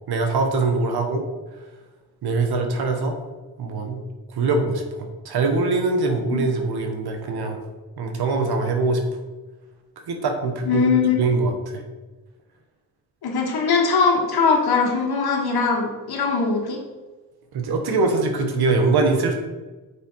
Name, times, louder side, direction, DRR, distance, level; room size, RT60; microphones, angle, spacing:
voice 1, 0.1-1.2 2.2-3.2 3.6-4.0 4.3-7.6 8.0-9.0 10.1-10.8 11.2-11.8 17.5-19.4, right 3 dB, 75° right, 5 dB, 1.3 m, -23 dB
voice 2, 10.7-11.3 13.2-16.8, left 5 dB, 75° left, 0 dB, 1.8 m, -21 dB
6.8 x 4.7 x 4.6 m, 1.2 s
cardioid pair, 60°, 38 cm